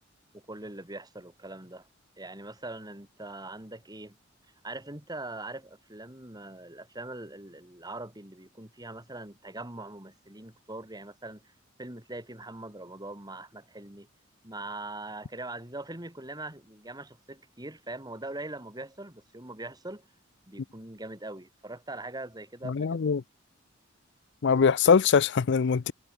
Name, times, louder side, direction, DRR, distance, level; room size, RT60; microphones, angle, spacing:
voice 1, 0.3-1.9 2.2-4.1 4.6-11.4 11.8-14.1 14.4-20.1 20.5-23.1, right 2 dB, 20° right, 4.2 m, -42 dB
voice 2, 22.6-23.2 24.4-25.9, left 6 dB, 60° left, 0.5 m, -22 dB
head